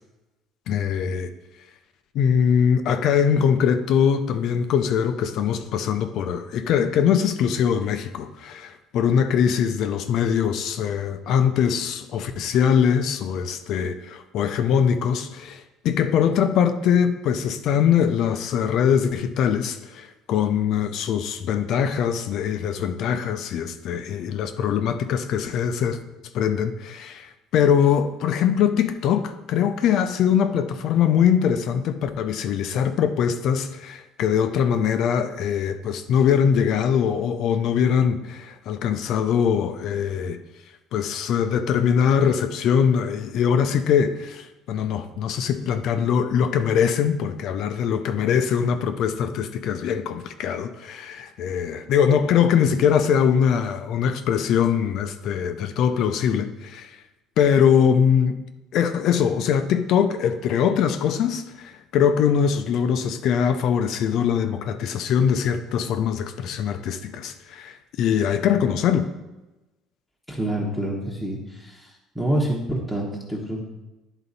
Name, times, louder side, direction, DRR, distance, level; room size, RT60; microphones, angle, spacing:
voice 1, 0.7-1.3 2.1-26.0 26.3-40.4 40.9-57.0 57.4-58.4 58.7-69.1, left 8 dB, 55° left, 9 dB, 0.5 m, -22 dB
voice 2, 70.3-73.7, right 1 dB, ahead, -4 dB, 1.0 m, -27 dB
11.0 x 4.0 x 4.0 m, 1.1 s
cardioid pair, 155°, 0 cm